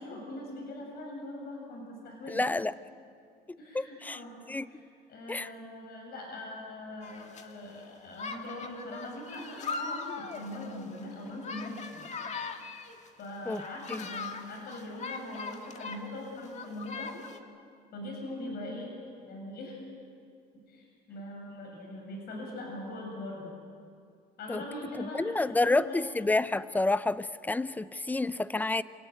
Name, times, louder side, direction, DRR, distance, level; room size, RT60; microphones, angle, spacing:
voice 1, 0.0-2.4 3.6-4.4 4.7-4.8 5.1-12.0 13.2-17.1 17.9-19.0 19.2-19.8 20.7-23.5 24.4-26.0, left 1 dB, 70° left, 0 dB, 7.3 m, -41 dB
voice 2, 2.3-2.7 3.7-4.2 4.5-4.7 5.3-5.5 13.5-13.6 13.9-14.1 24.5-24.6 25.0-28.8, left 2 dB, 10° left, 15 dB, 0.7 m, -29 dB
sound 1, 7.0-7.4 8.1-13.1 13.5-16.1 16.4-17.4, left 4 dB, 45° left, 1.9 m, -40 dB
26.5 x 18.0 x 9.1 m, 2.3 s
cardioid pair, 110°, 17 cm